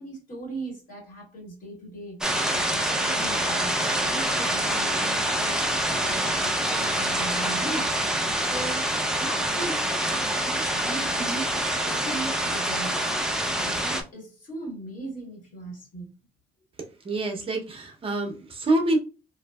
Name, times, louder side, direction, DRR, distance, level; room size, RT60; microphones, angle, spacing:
voice 1, 0.0-9.9 10.4-13.1 13.5-16.1, right 2 dB, 50° left, 1.6 m, -39 dB
sound 1, 2.2-14.0, right 1 dB, 5° right, 0.4 m, -26 dB
voice 2, 17.0-19.0, right 2 dB, 35° right, 0.7 m, -26 dB
3.1 x 2.6 x 2.3 m
cardioid pair, 110°, 17 cm